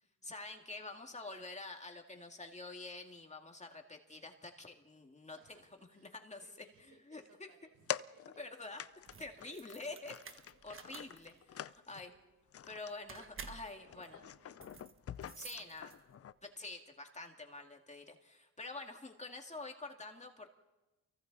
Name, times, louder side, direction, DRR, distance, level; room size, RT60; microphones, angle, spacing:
voice 1, 0.2-5.6 5.9-7.5 8.4-8.8 9.2-11.3 11.6-12.1 12.6-14.2 15.3-15.9 16.6-20.5, left 3 dB, 20° left, 3 dB, 2.3 m, -47 dB
voice 2, 5.2-8.2 9.2-9.6 9.9-10.1 10.5-10.6 11.2-11.5 11.9-12.4 13.8-15.0 15.4-15.8, right 5 dB, 80° right, 3 dB, 4.6 m, -67 dB
sound 1, 7.9-8.5 8.8-9.1 9.4-12.0 12.5-12.9 13.2-13.4 13.8-16.3, left 10 dB, 45° left, 0.6 m, -45 dB
sound 2, 8.9-16.3, right 5 dB, 35° right, 1.3 m, -53 dB
29.0 x 23.5 x 4.1 m, 1.1 s
cardioid pair, 95°, 34 cm